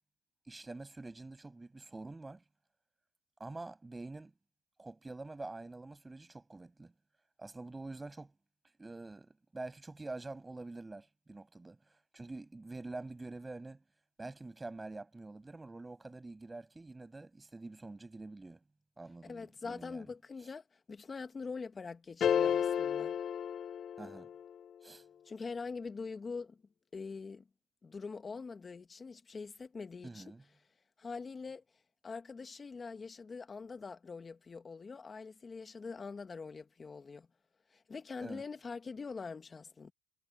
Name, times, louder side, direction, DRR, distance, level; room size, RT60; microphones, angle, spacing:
voice 1, 0.5-2.4 3.4-4.3 4.8-6.9 7.4-8.3 8.8-13.8 14.2-18.6 19.0-20.1 24.0-24.3 24.8-25.0 30.0-30.4 38.2-38.4, right 2 dB, 15° right, 7.0 m, -46 dB
voice 2, 19.2-23.1 25.3-26.6 26.9-27.4 27.8-30.3 31.0-31.6 32.0-37.3 37.7-39.9, left 4 dB, 25° left, 1.7 m, -44 dB
sound 1, 22.2-24.5, left 8 dB, 40° left, 0.6 m, -32 dB
cardioid pair, 115°, 0 cm